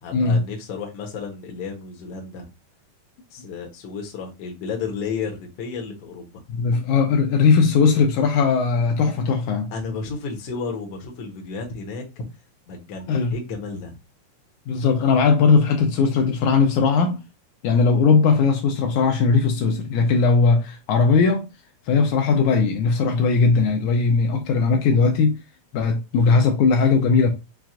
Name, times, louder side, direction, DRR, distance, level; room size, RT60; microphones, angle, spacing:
voice 1, 0.0-2.4 3.3-6.3 9.7-12.3 12.7-14.0, left 5 dB, 65° left, 1.7 m, -32 dB
voice 2, 6.5-9.7 13.1-13.4 14.7-17.2 17.6-21.5 21.9-25.4 25.7-27.3, left 4 dB, 80° left, 2.0 m, -19 dB
5.9 x 2.3 x 2.5 m
omnidirectional pair, 3.6 m